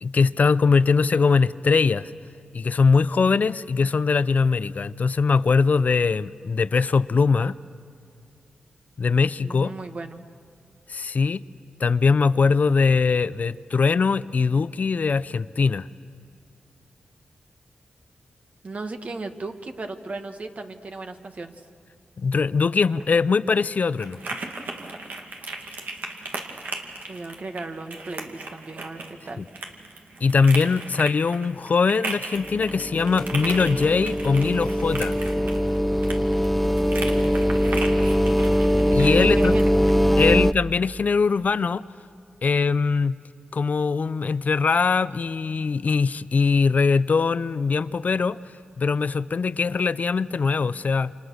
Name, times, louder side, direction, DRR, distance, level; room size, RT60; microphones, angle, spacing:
voice 1, 0.0-2.1 2.5-7.5 9.0-9.7 10.9-11.4 11.8-15.9 22.2-24.2 29.4-29.5 30.2-35.2 38.9-39.5 40.2-41.8 42.4-43.2 43.5-48.4 48.8-51.1, left 5 dB, 55° left, 16 dB, 0.5 m, -21 dB
voice 2, 9.4-10.2 18.6-21.5 27.1-29.4 39.1-39.7 40.1-40.5, right 3 dB, 50° right, 6 dB, 1.8 m, -36 dB
sound 1, 22.8-40.0, right 3 dB, 70° right, 2.4 m, -37 dB
sound 2, 32.4-40.5, equal, 5° left, 0.5 m, -22 dB
28.5 x 26.5 x 6.4 m, 2.3 s
cardioid pair, 55°, 3 cm